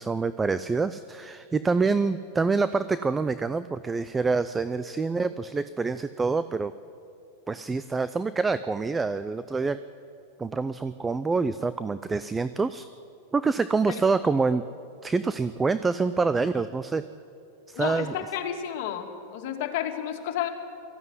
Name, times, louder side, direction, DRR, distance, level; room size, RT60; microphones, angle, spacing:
voice 1, 0.0-6.7 7.5-9.8 10.4-12.9 13.3-14.7 15.0-17.0 17.7-18.2, right 4 dB, 15° right, 14 dB, 0.5 m, -26 dB
voice 2, 17.7-20.5, left 10 dB, 60° left, 4 dB, 2.4 m, -31 dB
18.5 x 15.0 x 9.6 m, 2.5 s
supercardioid pair, 130°, 0 cm